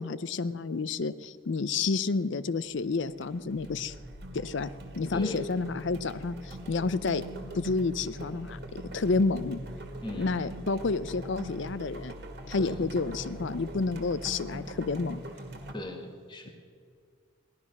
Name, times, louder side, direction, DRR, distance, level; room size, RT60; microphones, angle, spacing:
voice 1, 0.0-3.9 4.3-7.2 7.5-8.6 8.9-9.6 10.2-12.1 12.5-15.2, left 4 dB, 60° left, 15 dB, 0.5 m, -30 dB
sound 1, 2.5-2.8 3.1-15.7, right 1 dB, 50° right, 1.9 m, -42 dB
voice 2, 5.1-5.4 10.0-10.4 12.6-12.8 15.7-16.5, left 1 dB, 20° left, 4 dB, 1.7 m, -38 dB
17.0 x 12.5 x 6.1 m, 2.1 s
head